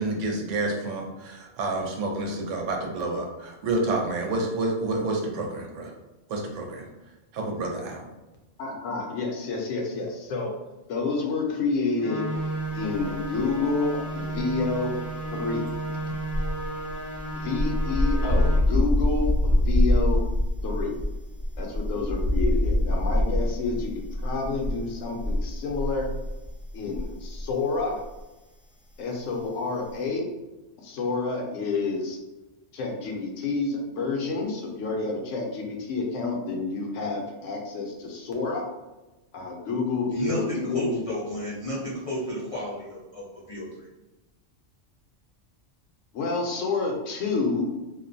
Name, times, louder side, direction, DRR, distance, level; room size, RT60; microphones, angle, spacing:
voice 1, 0.0-5.9 6.3-6.9 7.3-8.0, right 2 dB, 75° right, 1 dB, 0.9 m, -29 dB
voice 2, 8.6-10.5 10.9-12.3 12.7-15.0 15.3-15.6 17.3-20.2 20.6-20.9 21.6-26.1 26.7-28.0 29.0-30.3 30.8-32.2 32.7-38.7 39.3-41.0 46.1-47.7, left 3 dB, 75° left, 0 dB, 0.9 m, -29 dB
sound 1, 12.0-18.6, right 2 dB, 15° right, 0.6 m, -33 dB
sound 2, 12.9-13.7 14.0-27.5 27.8-28.0, left 1 dB, 35° right, 0.9 m, -25 dB
voice 3, 40.1-43.9, equal, 55° left, -7 dB, 0.3 m, -33 dB
2.4 x 2.1 x 2.5 m, 1.1 s
omnidirectional pair, 1.3 m